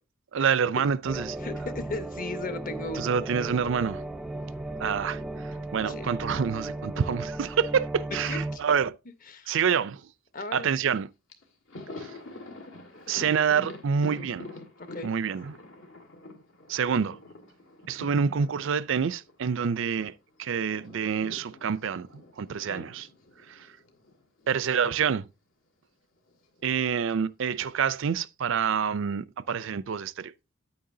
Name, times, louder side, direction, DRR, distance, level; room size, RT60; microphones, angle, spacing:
voice 1, 0.3-1.4 2.9-4.0 4.8-9.0 9.5-10.0 10.5-11.1 13.1-14.5 15.0-15.6 16.7-17.2 17.9-20.1 20.4-22.1 22.4-23.1 23.5-23.6 24.5-25.3 26.6-30.3, right 6 dB, 65° right, 0.4 m, -27 dB
sound 1, 1.1-8.6, right 2 dB, 5° right, 0.5 m, -36 dB
voice 2, 1.4-3.1 5.9-6.1 8.2-8.6 9.3-9.5 10.3-10.7 14.9-15.1 22.6-22.9, left 3 dB, 40° left, 1.0 m, -36 dB
Thunder, 10.9-11.0 11.3-20.1 20.4-24.7 24.9-25.1 26.3-27.0, left 2 dB, 70° left, 1.9 m, -47 dB
9.8 x 8.7 x 2.7 m
head